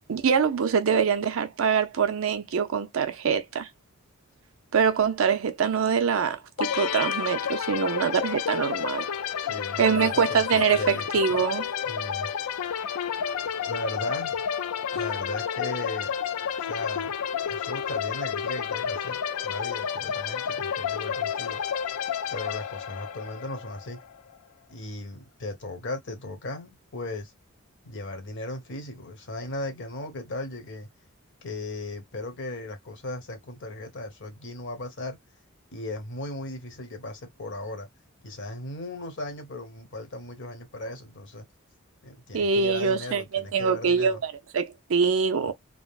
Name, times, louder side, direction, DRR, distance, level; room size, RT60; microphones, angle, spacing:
voice 1, 0.1-3.7 4.7-9.1 9.8-11.7 42.3-45.5, right 6 dB, 65° right, 0.5 m, -24 dB
sound 1, 6.6-24.2, left 8 dB, 85° left, 0.4 m, -30 dB
voice 2, 9.4-11.4 11.9-12.3 13.7-14.4 14.9-16.2 16.6-17.1 17.5-21.6 22.3-24.0 24.7-27.3 27.8-30.9 31.4-35.2 35.7-37.9 38.2-41.5 42.0-44.2, left 2 dB, 55° left, 1.0 m, -37 dB
3.6 x 2.0 x 2.3 m
head